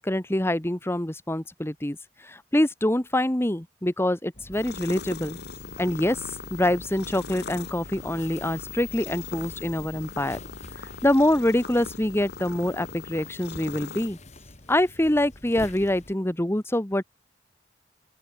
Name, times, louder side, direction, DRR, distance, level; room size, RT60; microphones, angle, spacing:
voice 1, 0.0-2.0 2.2-5.4 5.8-6.2 6.5-10.4 11.0-14.2 14.7-17.0, left 1 dB, 15° left, 1.2 m, -25 dB
sound 1, 4.3-16.1, left 1 dB, 40° left, 3.4 m, -46 dB
sound 2, 4.5-14.1, left 5 dB, 65° left, 1.2 m, -40 dB
open air
head